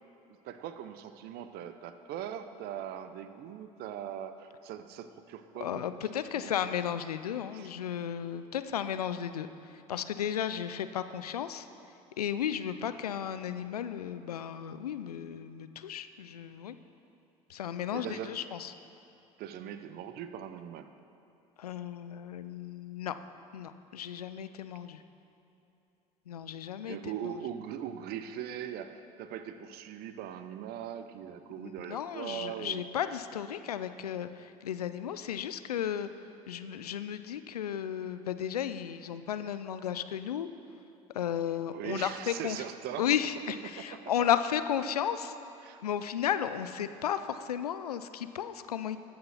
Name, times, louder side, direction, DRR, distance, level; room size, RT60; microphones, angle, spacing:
voice 1, 0.4-6.5 7.5-7.7 17.9-18.4 19.4-20.9 26.9-32.9 41.7-43.1 43.6-44.3 45.6-45.8, right 9 dB, 55° right, 10 dB, 0.7 m, -40 dB
voice 2, 5.6-9.5 9.9-11.7 12.2-16.7 17.5-18.7 21.6-23.1 23.5-25.0 26.3-27.0 27.2-27.3 31.6-36.1 36.5-40.5 41.1-42.6 43.0-45.3 45.8-49.0, left 9 dB, 90° left, 11 dB, 0.4 m, -34 dB
13.5 x 6.6 x 5.8 m, 2.9 s
hypercardioid pair, 65°, 19 cm